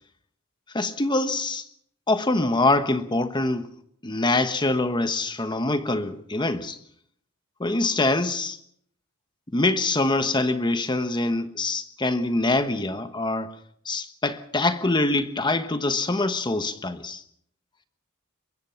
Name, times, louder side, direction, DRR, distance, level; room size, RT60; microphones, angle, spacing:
voice 1, 0.7-1.6 2.1-3.7 4.0-6.8 7.6-8.6 9.5-13.5 13.8-17.2, left 2 dB, 20° left, 1.2 m, -24 dB
23.0 x 22.5 x 5.8 m
head